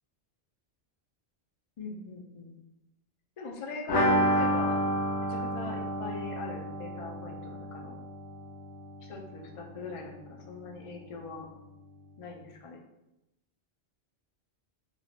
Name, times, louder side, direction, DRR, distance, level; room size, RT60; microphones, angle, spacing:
voice 1, 1.8-2.5 3.4-4.8 5.2-7.9 9.0-11.5 12.2-12.8, left 3 dB, 60° left, 1 dB, 0.3 m, -41 dB
sound 1, 3.9-9.5 9.7-9.8 10.1-10.2, equal, 75° left, 0.9 m, -30 dB
3.1 x 2.6 x 2.4 m, 0.93 s
omnidirectional pair, 1.1 m